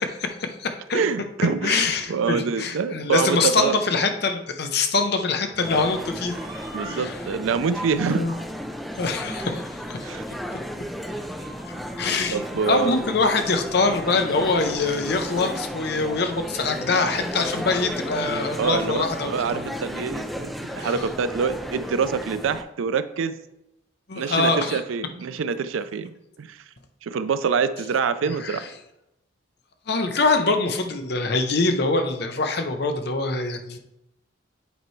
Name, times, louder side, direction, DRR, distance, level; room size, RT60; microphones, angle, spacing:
voice 1, 0.0-1.0 1.6-6.4 6.9-7.2 8.0-8.3 9.0-10.1 12.0-12.4 12.7-19.7 20.8-20.9 24.1-24.8 28.3-28.6 29.9-33.8, left 3 dB, 55° left, 6 dB, 0.6 m, -24 dB
voice 2, 0.9-3.8 6.7-8.3 10.0-10.2 12.3-12.9 18.6-23.4 24.2-26.6 27.0-28.6, right 6 dB, 85° right, 12 dB, 0.4 m, -26 dB
sound 1, 5.5-7.3 7.7-7.8 8.2-8.3 8.6-9.8 11.1-15.0, right 2 dB, 20° right, 0.9 m, -44 dB
sound 2, 5.6-22.6, equal, ahead, 0.3 m, -34 dB
8.1 x 4.4 x 3.1 m, 0.88 s
head